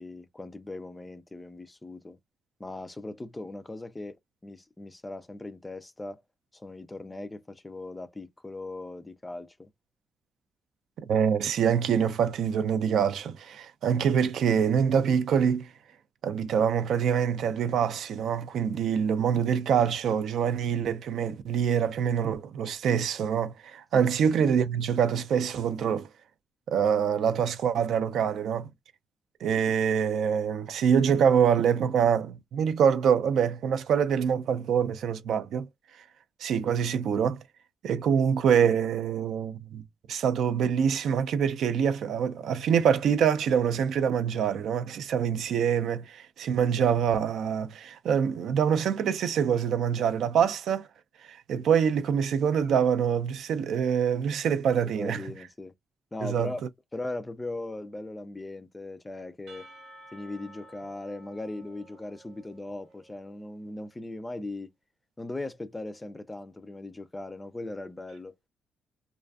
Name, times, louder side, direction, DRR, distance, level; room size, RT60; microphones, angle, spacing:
voice 1, 0.0-2.2 2.6-6.2 6.5-9.7 23.9-24.1 54.8-55.7 56.1-56.6 56.9-59.7 60.1-64.7 65.2-68.3, left 2 dB, 15° left, 0.3 m, -39 dB
voice 2, 11.1-15.7 16.2-26.1 26.7-28.7 29.4-35.7 36.0-36.1 36.4-37.4 37.8-50.9 51.2-55.2 56.2-56.5, right 7 dB, 70° right, 0.4 m, -25 dB
Percussion / Church bell, 59.5-63.4, right 1 dB, 90° right, 0.8 m, -52 dB
2.5 x 2.4 x 2.3 m
cardioid pair, 130°, 0 cm